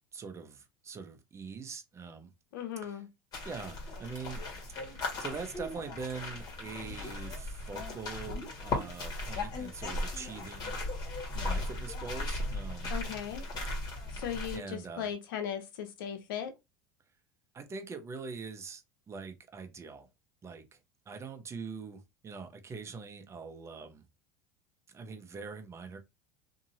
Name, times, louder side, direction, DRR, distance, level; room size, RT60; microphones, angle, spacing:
voice 1, 0.1-2.3 2.8-3.0 3.4-4.4 4.8-10.8 11.3-12.9 13.7-13.9 14.5-15.1 17.5-20.1 20.4-20.8 21.1-24.0 24.9-26.0, right 5 dB, 25° right, 0.8 m, -43 dB
voice 2, 2.5-3.1 12.9-13.4 14.1-16.5, left 9 dB, 80° left, 0.9 m, -37 dB
sound 1, 3.3-14.6, left 2 dB, 35° left, 1.5 m, -37 dB
2.8 x 2.7 x 2.7 m
hypercardioid pair, 100°, 11 cm